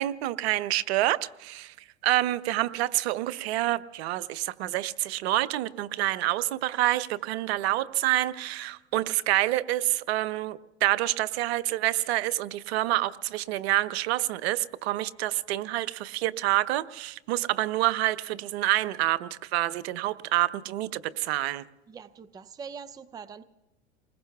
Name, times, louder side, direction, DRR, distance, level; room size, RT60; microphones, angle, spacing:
voice 1, 0.0-1.7 2.0-21.6, right 15 dB, 65° right, 17 dB, 0.7 m, -27 dB
voice 2, 21.9-23.4, right 6 dB, 10° right, 14 dB, 0.5 m, -43 dB
29.5 x 20.5 x 2.3 m, 1.0 s
hypercardioid pair, 95°, 34 cm